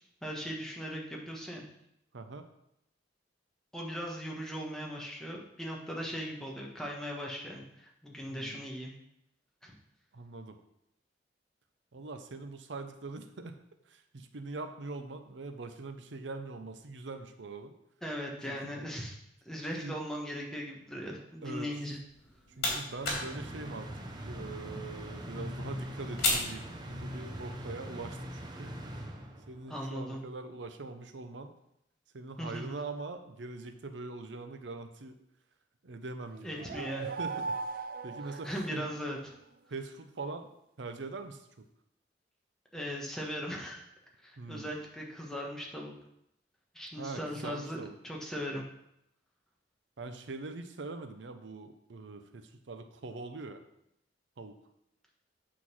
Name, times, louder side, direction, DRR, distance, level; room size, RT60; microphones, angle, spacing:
voice 1, 0.2-1.6 3.7-8.9 9.6-9.7 18.0-19.2 19.4-22.0 29.7-30.2 32.4-32.8 36.4-37.1 38.2-39.3 42.7-43.8 44.2-45.9 46.7-48.6, equal, 5° left, -1 dB, 1.2 m, -39 dB
voice 2, 2.1-2.4 8.3-8.6 10.1-10.6 11.9-13.6 13.9-17.7 18.5-18.7 19.8-20.0 21.4-21.7 22.6-23.9 24.2-28.7 29.5-31.5 32.1-35.2 35.8-37.5 38.0-38.8 39.7-40.5 40.8-41.7 44.4-44.7 47.0-47.9 50.0-53.6 54.4-54.6, right 3 dB, 90° right, 8 dB, 0.7 m, -42 dB
sound 1, 22.1-27.4, left 2 dB, 60° left, 2.9 m, -37 dB
sound 2, 23.0-29.7, equal, 25° right, 0.9 m, -42 dB
sound 3, 36.3-39.2, right 4 dB, 50° right, 0.5 m, -39 dB
8.4 x 3.9 x 6.1 m, 0.79 s
head